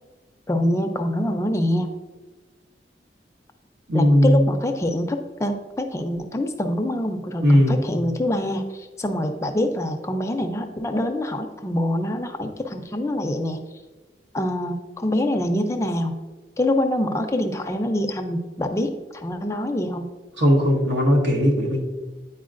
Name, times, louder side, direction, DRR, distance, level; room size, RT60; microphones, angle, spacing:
voice 1, 0.5-1.9 3.9-13.6 14.3-16.2 16.6-20.1, left 1 dB, 15° left, 5 dB, 0.4 m, -25 dB
voice 2, 3.9-4.5 7.4-7.8 20.4-21.9, equal, 80° right, 0 dB, 1.3 m, -17 dB
9.4 x 4.4 x 2.5 m, 1.2 s
head